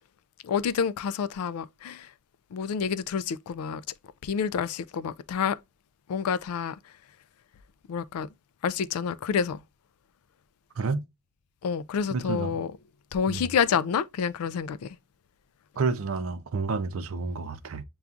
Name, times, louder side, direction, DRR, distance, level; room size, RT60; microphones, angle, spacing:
voice 1, 0.4-2.1 2.5-3.8 4.2-5.6 6.1-6.8 7.9-8.3 8.6-9.6 11.6-12.7 13.1-15.0, left 7 dB, 80° left, 0.3 m, -28 dB
voice 2, 12.1-12.6 13.3-13.5 15.8-17.8, right 4 dB, 65° right, 0.5 m, -30 dB
6.9 x 2.3 x 2.4 m
head